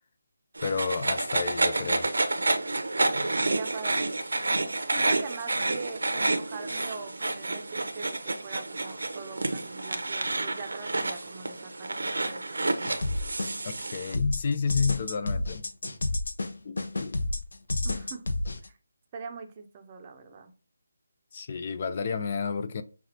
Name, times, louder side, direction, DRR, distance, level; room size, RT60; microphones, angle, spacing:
sound 1, 0.5-14.1, right 2 dB, 85° right, 0.8 m, -29 dB
voice 1, 0.6-2.1 13.6-15.6 16.6-17.2 21.3-22.8, left 5 dB, 35° left, 0.3 m, -30 dB
voice 2, 3.1-4.2 4.9-12.7 17.8-18.2 19.1-20.5, right 5 dB, 25° right, 0.6 m, -42 dB
sound 2, 12.8-13.8 14.1-18.7, left 2 dB, 75° left, 0.7 m, -30 dB
5.8 x 2.4 x 2.8 m
figure-of-eight pair, 170°, 0 cm